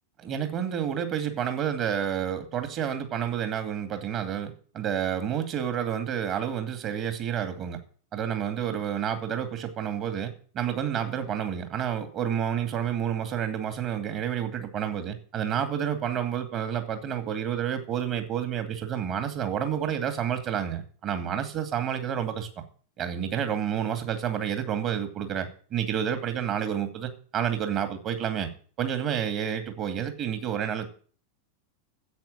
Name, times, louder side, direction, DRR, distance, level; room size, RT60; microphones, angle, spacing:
voice 1, 0.2-7.8 8.1-22.6 23.0-28.5 28.8-30.9, right 9 dB, 35° right, 8 dB, 2.4 m, -29 dB
10.5 x 8.4 x 9.0 m, 0.42 s
figure-of-eight pair, 90°, 0 cm